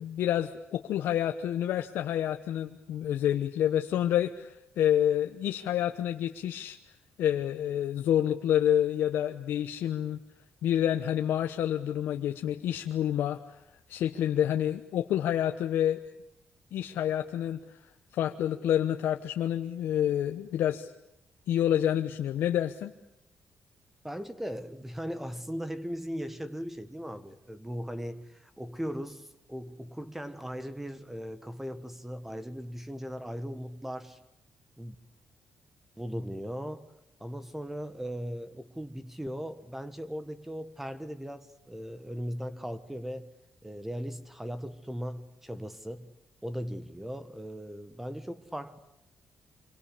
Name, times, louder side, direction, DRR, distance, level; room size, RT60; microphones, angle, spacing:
voice 1, 0.0-6.8 7.2-10.2 10.6-13.4 13.9-16.0 16.7-17.6 18.1-20.9 21.5-22.9, left 11 dB, 90° left, 1.0 m, -28 dB
voice 2, 24.0-34.2 34.8-34.9 36.0-36.9 37.2-43.3 43.6-46.1 46.4-48.8, equal, 5° right, 1.4 m, -38 dB
26.5 x 24.0 x 8.5 m
cardioid pair, 115°, 4 cm